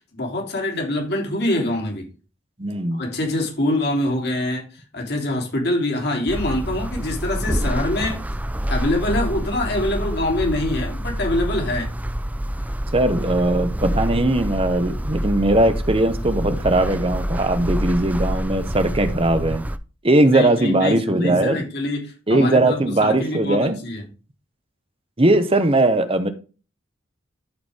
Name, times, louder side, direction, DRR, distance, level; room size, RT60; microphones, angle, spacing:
voice 1, 0.0-2.1 2.9-4.7 4.9-8.2 8.7-11.9 20.3-24.0, left 1 dB, 55° left, 1 dB, 3.2 m, -24 dB
voice 2, 2.6-3.0 12.9-19.6 20.0-21.6 22.3-23.8 25.2-26.3, right 2 dB, 30° right, 9 dB, 1.1 m, -19 dB
sound 1, 6.3-19.8, equal, 10° right, 0.5 m, -27 dB
13.0 x 4.8 x 3.5 m, 0.34 s
head